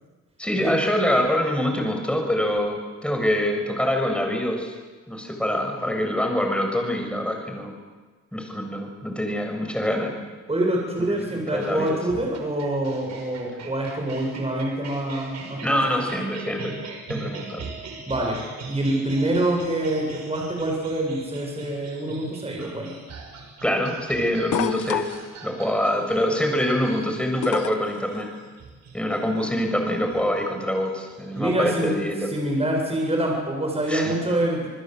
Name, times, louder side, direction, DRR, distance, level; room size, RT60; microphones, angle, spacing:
voice 1, 0.4-4.7 5.1-7.7 8.3-10.1 11.0-12.0 15.6-16.8 17.1-17.7 23.6-25.1 25.4-28.3 28.9-32.3 33.9-34.2, equal, 5° left, 3 dB, 7.1 m, -25 dB
voice 2, 10.5-15.8 16.1-16.2 18.1-18.4 18.7-22.9 31.3-31.9 32.3-34.7, right 1 dB, 20° right, 0 dB, 7.5 m, -26 dB
sound 1, 11.6-31.4, right 4 dB, 60° right, 5.5 m, -41 dB
sound 2, 24.5-25.3 27.4-28.0 29.5-29.6, left 11 dB, 75° left, 1.4 m, -27 dB
27.5 x 20.5 x 8.1 m, 1.4 s
cardioid pair, 90°, 30 cm